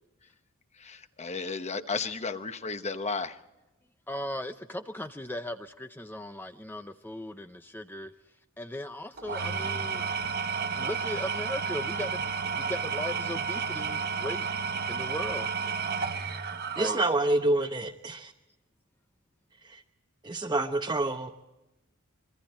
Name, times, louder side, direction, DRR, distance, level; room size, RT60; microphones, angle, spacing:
voice 1, 0.8-3.4, left 4 dB, 30° left, 1.1 m, -34 dB
voice 2, 4.1-8.1 8.6-10.1 10.7-12.3 12.6-14.5 14.9-15.5 16.8-17.0, left 1 dB, 10° left, 0.6 m, -37 dB
Engine / Tools, 9.2-17.5, right 5 dB, 45° right, 1.3 m, -32 dB
voice 3, 16.7-18.3 19.6-19.8 20.2-21.3, right 2 dB, 20° right, 0.9 m, -27 dB
25.5 x 23.5 x 4.4 m
head